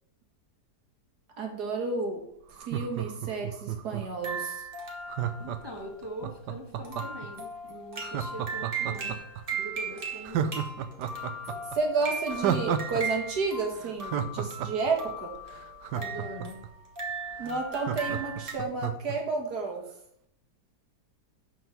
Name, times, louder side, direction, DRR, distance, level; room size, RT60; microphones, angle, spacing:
voice 1, 1.4-2.2 2.7-4.6 11.7-15.3 17.4-19.8, right 4 dB, 70° right, 1 dB, 2.1 m, -31 dB
Laughter, 2.5-4.2 5.1-7.3 8.0-9.4 9.8-9.9 10.2-13.0 13.3-13.4 13.8-16.7 17.1-17.2 17.4-19.2 19.5-19.6, right 9 dB, 85° right, 1.3 m, -32 dB
sound 1, 4.2-18.5, right 3 dB, 35° right, 1.4 m, -38 dB
voice 2, 5.4-9.2 9.5-10.7 15.9-16.7, equal, 15° right, -2 dB, 1.3 m, -42 dB
5.8 x 5.3 x 6.8 m, 0.74 s
omnidirectional pair, 1.8 m